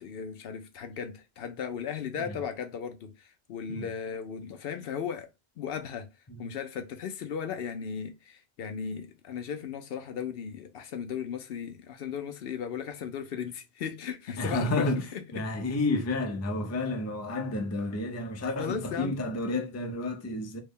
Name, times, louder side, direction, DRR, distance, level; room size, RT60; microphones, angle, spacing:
voice 1, 0.0-5.3 5.6-6.1 6.4-15.5 18.6-19.2, left 7 dB, 70° left, 0.7 m, -36 dB
voice 2, 14.4-15.0 15.3-20.6, left 2 dB, 25° left, 0.4 m, -30 dB
3.3 x 2.1 x 3.5 m
omnidirectional pair, 1.0 m